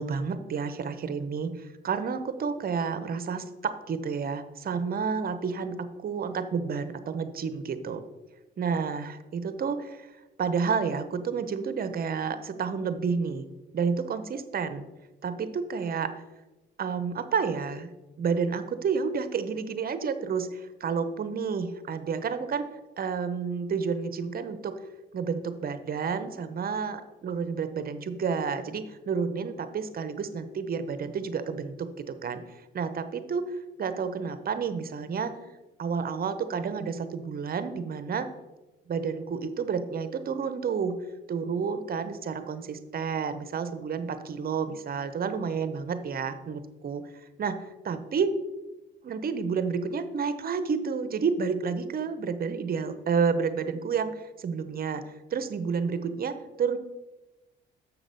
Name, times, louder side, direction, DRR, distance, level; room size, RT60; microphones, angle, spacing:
voice 1, 0.0-8.0 8.6-10.1 10.4-13.4 13.7-14.8 15.2-16.1 16.8-17.9 18.2-22.7 23.0-24.8 25.1-32.4 32.7-35.4 35.8-38.3 38.9-40.9 41.3-47.0 47.4-48.4 49.0-55.0 55.3-56.8, right 5 dB, 50° right, 11 dB, 0.8 m, -30 dB
7.3 x 5.9 x 5.3 m, 1.1 s
cardioid pair, 90°, 20 cm